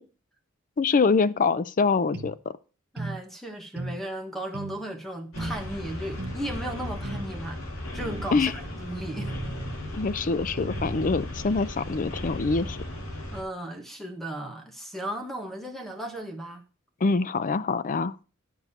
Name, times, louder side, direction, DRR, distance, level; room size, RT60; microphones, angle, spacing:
voice 1, 0.8-2.6 8.3-8.5 9.9-12.8 17.0-18.2, left 4 dB, 40° left, 0.5 m, -25 dB
sound 1, 2.1-2.4 3.0-3.2 3.8-4.0 4.5-4.8 5.4-5.6 6.2-6.4 7.0-7.3 8.0-8.3 9.2-9.8 10.6-11.2, right 2 dB, 50° right, 0.9 m, -36 dB
voice 2, 2.9-7.6 7.9-9.4 13.3-16.6, right 1 dB, ahead, 1.4 m, -35 dB
sound 2, 5.3-13.4, left 1 dB, 80° left, 3.4 m, -36 dB
9.5 x 7.0 x 4.2 m
head